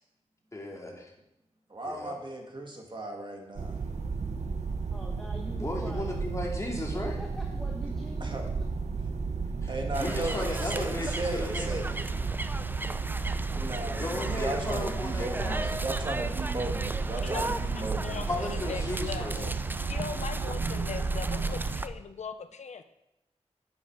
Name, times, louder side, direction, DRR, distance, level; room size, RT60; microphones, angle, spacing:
voice 1, 0.5-1.1 1.8-2.2 5.6-7.2 9.6-9.7 10.0-12.0 13.9-15.7 18.3-19.3, left 1 dB, 25° left, -1 dB, 2.5 m, -35 dB
voice 2, 1.7-3.8 8.2-8.5 9.7-11.9 13.6-18.3, right 1 dB, 40° right, 2 dB, 2.0 m, -36 dB
sound 1, 3.6-21.8, right 4 dB, 75° right, 0.9 m, -33 dB
voice 3, 4.9-6.1 6.7-8.6, equal, 5° left, 0 dB, 1.2 m, -44 dB
sound 2, 9.9-21.9, right 2 dB, 15° right, 0.4 m, -38 dB
voice 4, 17.2-19.5 19.9-22.8, left 6 dB, 80° left, 10 dB, 0.6 m, -40 dB
10.5 x 8.2 x 4.7 m, 0.88 s
wide cardioid pair, 80°, 12 cm